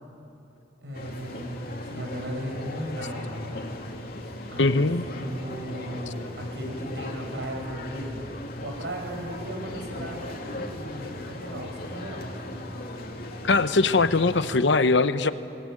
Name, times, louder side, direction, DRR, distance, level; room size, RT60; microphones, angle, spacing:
voice 1, 0.8-3.6 4.5-8.2 8.6-12.3, equal, 75° right, 2 dB, 5.6 m, -36 dB
sound 1, 0.9-14.6, left 1 dB, 55° left, 2.5 m, -38 dB
voice 2, 4.6-5.0 13.4-15.3, left 3 dB, 90° left, 12 dB, 0.8 m, -21 dB
23.0 x 21.5 x 8.7 m, 2.9 s
head